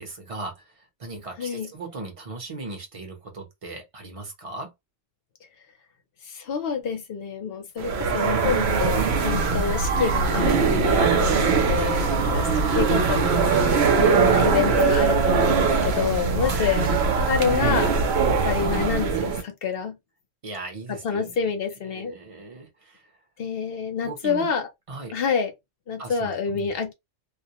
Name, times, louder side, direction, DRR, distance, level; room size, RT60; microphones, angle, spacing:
voice 1, 0.0-4.7 12.0-12.8 16.4-16.7 18.3-18.6 20.4-21.5 21.9-23.1 24.0-24.5 24.9-25.2 26.0-26.7, right 2 dB, 35° right, 0.7 m, -38 dB
voice 2, 1.4-1.7 6.2-12.4 12.8-16.9 17.2-17.9 18.2-20.0 20.9-22.2 23.4-24.7 25.1-25.5 25.9-26.9, left 6 dB, 60° left, 0.8 m, -28 dB
sound 1, 7.8-19.4, right 5 dB, 65° right, 0.8 m, -21 dB
2.4 x 2.1 x 2.8 m
omnidirectional pair, 1.3 m